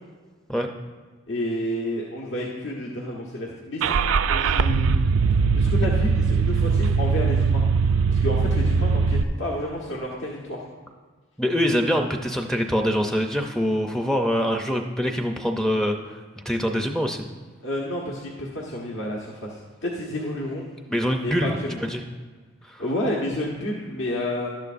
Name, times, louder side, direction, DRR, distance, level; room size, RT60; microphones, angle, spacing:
voice 1, 1.3-3.9 4.3-4.9 5.5-7.6 8.1-10.6 17.6-20.7 21.2-21.8 22.8-24.5, left 1 dB, 75° left, -3 dB, 1.2 m, -30 dB
Car / Engine starting, 3.8-9.2, right 5 dB, 80° right, 0.4 m, -21 dB
voice 2, 11.4-16.2 16.5-17.3 20.9-21.5 21.8-22.0 22.6-22.8, equal, 5° left, 3 dB, 0.5 m, -24 dB
12.0 x 10.5 x 2.5 m, 1.4 s
head